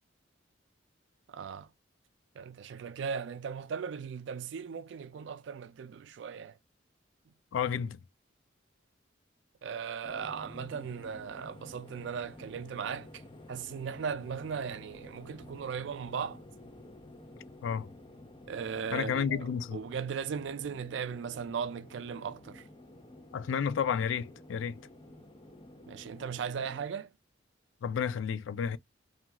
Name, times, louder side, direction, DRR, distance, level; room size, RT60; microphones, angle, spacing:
voice 1, 1.3-1.7 2.4-6.6 9.6-13.2 13.5-16.4 18.5-22.7 25.9-27.1, right 6 dB, 70° right, 0.3 m, -37 dB
voice 2, 7.5-8.0 17.6-17.9 18.9-19.8 23.3-24.8 27.8-28.8, left 7 dB, 80° left, 0.4 m, -31 dB
sound 1, 10.0-26.8, left 1 dB, 25° left, 0.6 m, -51 dB
2.4 x 2.3 x 2.8 m
head